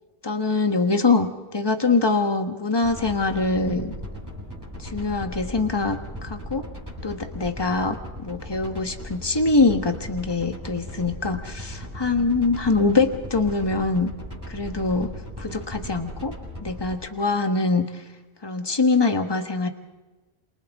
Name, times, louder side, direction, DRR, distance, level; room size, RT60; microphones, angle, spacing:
voice 1, 0.2-3.9 4.8-6.7 7.0-14.1 14.5-15.1 15.4-16.3 16.6-18.0 18.4-19.7, left 3 dB, 25° left, 6 dB, 1.4 m, -23 dB
sound 1, 2.8-16.9, equal, 15° right, 7.3 m, -37 dB
28.0 x 27.0 x 3.6 m, 1.2 s
omnidirectional pair, 1.0 m